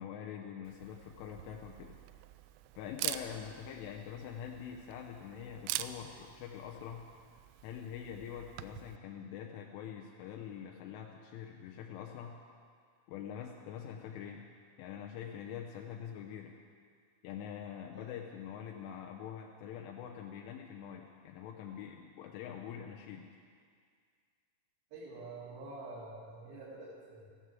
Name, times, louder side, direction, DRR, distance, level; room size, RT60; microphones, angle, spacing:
voice 1, 0.0-1.9 2.8-7.1 7.6-12.4 13.1-14.5 14.8-16.6 17.2-23.3, left 8 dB, 85° left, 1 dB, 3.4 m, -44 dB
Camera, 0.6-9.0, right 14 dB, 90° right, 2.4 m, -45 dB
voice 2, 24.9-27.3, right 2 dB, 55° right, -8 dB, 4.1 m, -47 dB
14.5 x 13.0 x 7.6 m, 2.1 s
omnidirectional pair, 5.5 m